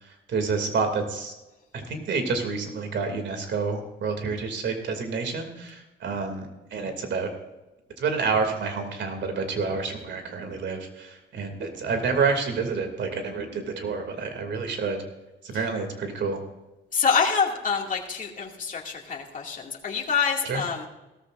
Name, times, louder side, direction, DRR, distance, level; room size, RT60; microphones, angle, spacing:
voice 1, 0.3-1.3 1.7-7.3 8.0-15.0 15.4-16.4 20.4-20.6, right 4 dB, 65° right, 5 dB, 2.8 m, -28 dB
voice 2, 16.9-20.9, left 6 dB, 40° left, 0 dB, 2.5 m, -26 dB
17.0 x 14.0 x 2.6 m, 1.0 s
cardioid pair, 90°, 20 cm